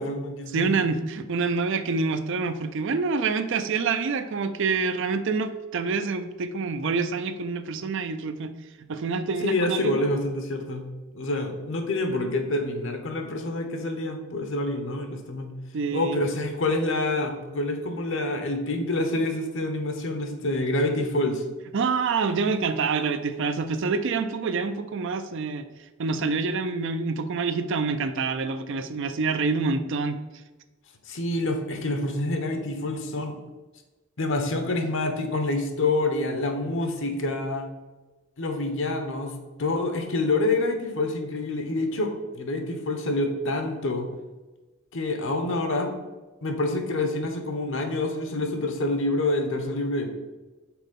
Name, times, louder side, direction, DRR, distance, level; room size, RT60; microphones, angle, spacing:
voice 1, 0.0-0.7 9.4-10.9 11.1-15.5 15.9-21.4 31.1-33.3 34.2-37.7 38.4-39.3 39.6-44.1 44.9-45.9 46.4-50.1, left 2 dB, 65° left, 5 dB, 0.9 m, -27 dB
voice 2, 0.5-8.5 8.9-10.0 15.7-16.2 21.7-25.7 26.0-30.2, right 4 dB, 60° right, 10 dB, 0.5 m, -27 dB
6.1 x 4.1 x 5.3 m, 1.2 s
head